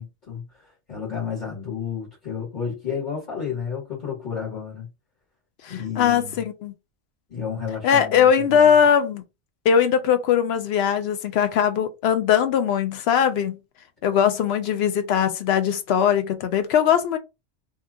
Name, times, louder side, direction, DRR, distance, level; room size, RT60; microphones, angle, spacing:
voice 1, 0.0-4.9 5.7-6.4 7.3-8.8, left 6 dB, 40° left, 1.4 m, -32 dB
voice 2, 5.6-6.7 7.8-9.2 9.6-13.6 14.0-17.2, left 8 dB, 70° left, 0.8 m, -20 dB
2.8 x 2.3 x 3.5 m
omnidirectional pair, 1.2 m